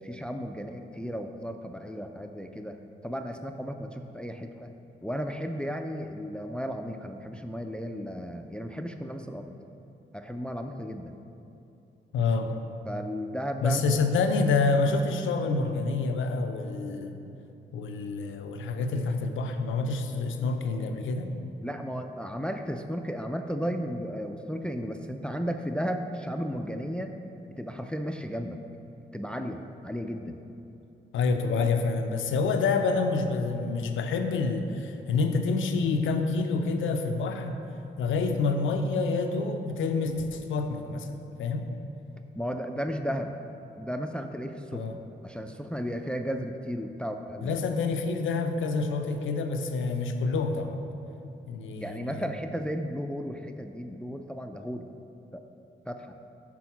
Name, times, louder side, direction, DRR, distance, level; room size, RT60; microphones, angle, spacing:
voice 1, 0.0-4.7 5.0-9.6 10.1-11.1 12.9-13.8 21.6-27.1 27.6-28.6 29.1-30.4 42.3-43.3 43.8-47.6 51.8-54.9 55.3-55.4 55.9-56.1, equal, 5° left, 6 dB, 0.4 m, -34 dB
voice 2, 12.1-12.5 13.6-17.1 17.7-21.3 31.1-37.6 38.0-41.7 44.7-44.9 47.4-50.8 51.5-52.3, left 4 dB, 85° left, 6 dB, 0.5 m, -27 dB
6.1 x 3.8 x 5.8 m, 2.9 s
cardioid pair, 60°, 20 cm